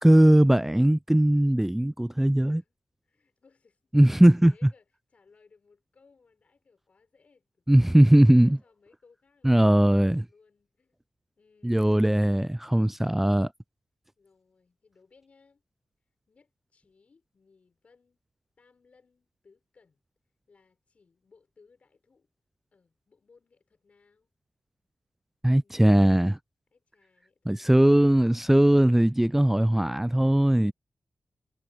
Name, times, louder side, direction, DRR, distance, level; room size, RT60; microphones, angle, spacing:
voice 1, 0.0-2.6 3.9-4.5 7.7-8.6 9.4-10.3 11.6-13.5 25.4-26.4 27.5-30.7, right 1 dB, 10° right, 0.3 m, -20 dB
voice 2, 2.4-2.7 3.0-3.9 4.4-11.0 11.4-12.1 14.2-15.6 16.3-18.2 18.6-20.0 20.5-22.3 22.7-24.3 26.7-28.4, left 4 dB, 60° left, 4.8 m, -63 dB
supercardioid pair, 40°, 3 cm